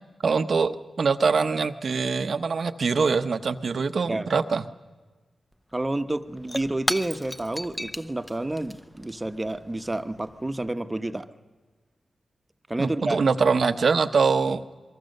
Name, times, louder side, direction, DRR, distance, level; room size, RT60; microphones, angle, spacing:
voice 1, 0.2-4.6 12.8-14.6, right 5 dB, 60° right, 10 dB, 0.9 m, -23 dB
Shatter / Crushing, 5.5-5.6 5.8-10.7, equal, 5° left, 0.8 m, -36 dB
voice 2, 5.7-11.3 12.7-13.2, right 2 dB, 20° right, 9 dB, 1.1 m, -29 dB
28.0 x 23.0 x 6.6 m, 1.3 s
cardioid pair, 80°, 0 cm